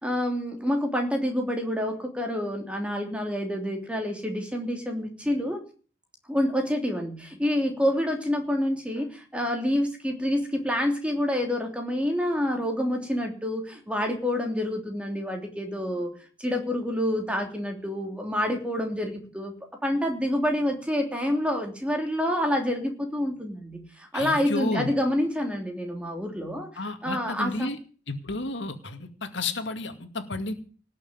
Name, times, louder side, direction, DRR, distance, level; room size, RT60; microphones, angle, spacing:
voice 1, 0.0-5.6 6.3-19.6 19.8-27.7, equal, 5° right, 2 dB, 3.1 m, -28 dB
voice 2, 24.1-24.9 26.8-27.8 28.1-30.5, left 2 dB, 75° left, 6 dB, 2.3 m, -32 dB
19.0 x 6.6 x 9.7 m, 0.41 s
head